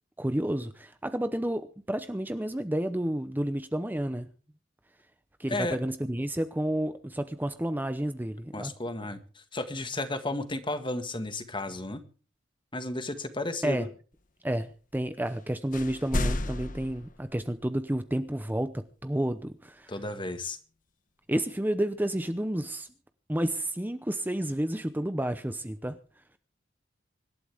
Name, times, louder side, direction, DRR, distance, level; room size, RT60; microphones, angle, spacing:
voice 1, 0.2-4.3 5.4-8.7 13.6-13.8 14.4-18.7 19.0-19.9 21.3-22.9 23.3-26.0, right 1 dB, 10° right, 10 dB, 0.8 m, -30 dB
voice 2, 8.5-12.0 12.7-13.9 19.9-20.6, left 2 dB, 25° left, 10 dB, 1.7 m, -33 dB
sound 1, 15.3-15.4 15.7-17.8, left 1 dB, 45° left, 1.4 m, -32 dB
25.5 x 12.5 x 3.5 m, 0.39 s
head